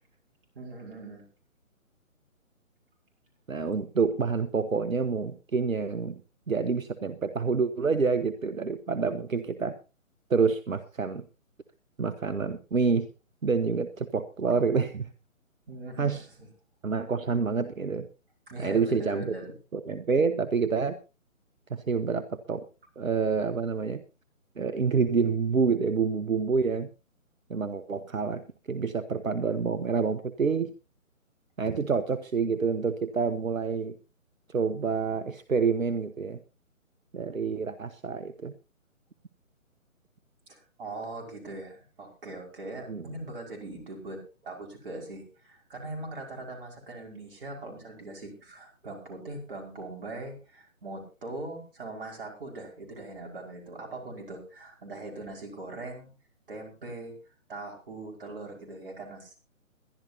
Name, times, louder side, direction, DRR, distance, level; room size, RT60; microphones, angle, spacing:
voice 1, 0.5-1.2 15.7-16.5 18.5-19.6 40.5-56.1 56.5-57.2 57.5-59.3, right 2 dB, 40° right, 1 dB, 5.6 m, -41 dB
voice 2, 3.5-6.2 6.5-9.7 10.3-11.2 12.0-13.1 13.4-15.1 16.0-16.3 16.8-18.1 18.6-19.3 19.7-21.0 21.7-22.6 23.0-24.0 24.6-26.9 27.5-28.4 28.7-30.7 31.6-34.0 34.5-36.4 37.1-38.5 42.9-43.0, right 5 dB, 75° right, 12 dB, 1.1 m, -27 dB
22.0 x 11.5 x 2.9 m, 0.32 s
figure-of-eight pair, 140°, 41 cm